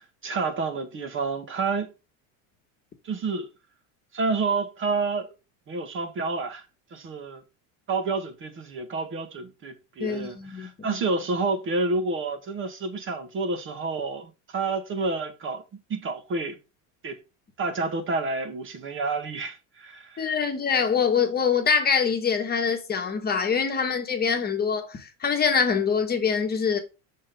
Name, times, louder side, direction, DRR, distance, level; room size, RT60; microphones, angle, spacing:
voice 1, 0.2-1.9 3.0-3.5 4.1-5.3 5.7-6.6 6.9-7.4 7.9-15.6 15.9-16.6 17.0-17.2 17.6-20.4, right 3 dB, 30° right, 1.0 m, -29 dB
voice 2, 10.0-10.9 20.2-26.8, left 6 dB, 25° left, 1.2 m, -24 dB
5.8 x 3.7 x 5.1 m
cardioid pair, 140°, 40 cm